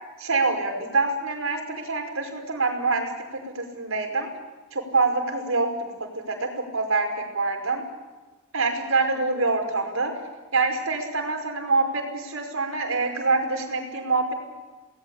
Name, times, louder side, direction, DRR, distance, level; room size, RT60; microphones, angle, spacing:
voice 1, 0.2-4.3 4.7-6.5 6.7-7.8 8.5-10.2 10.5-14.3, right 3 dB, 70° right, 4 dB, 5.3 m, -25 dB
28.5 x 19.0 x 8.6 m, 1.3 s
head